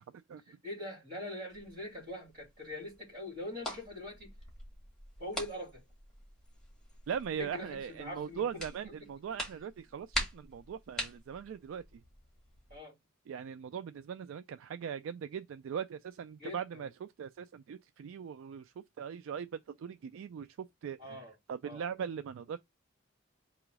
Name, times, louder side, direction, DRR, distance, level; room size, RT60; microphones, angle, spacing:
voice 1, 0.5-4.3 5.2-5.8 7.4-9.1 12.7-12.9 16.4-16.9 21.0-21.3 21.6-21.9, left 1 dB, 45° right, 2.5 m, -43 dB
sound 1, 1.5-12.8, left 1 dB, ahead, 1.8 m, -44 dB
voice 2, 7.1-11.8 13.3-20.5 20.8-22.6, right 7 dB, 70° right, 0.3 m, -40 dB
3.8 x 3.0 x 4.6 m
head